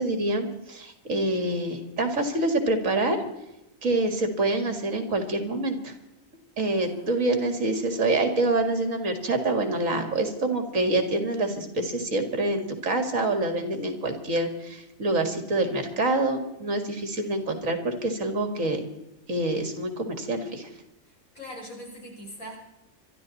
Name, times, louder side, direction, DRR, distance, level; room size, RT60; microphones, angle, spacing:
voice 1, 0.0-3.2 3.8-5.9 6.6-18.8 19.3-20.7, right 2 dB, 65° right, 6 dB, 2.6 m, -26 dB
voice 2, 6.8-7.2 17.2-17.3 21.1-22.6, equal, 80° left, -2 dB, 5.7 m, -42 dB
24.5 x 12.5 x 4.2 m, 0.91 s
omnidirectional pair, 1.4 m